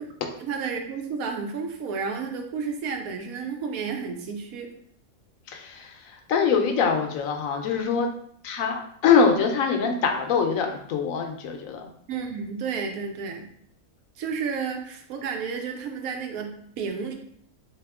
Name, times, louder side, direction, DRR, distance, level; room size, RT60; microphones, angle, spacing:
voice 1, 0.4-4.7 12.1-13.5 14.2-17.1, right 5 dB, 80° right, 3 dB, 1.1 m, -31 dB
voice 2, 5.5-8.1 8.4-11.9, left 6 dB, 75° left, 4 dB, 0.9 m, -24 dB
3.5 x 2.8 x 3.5 m, 0.65 s
omnidirectional pair, 1.5 m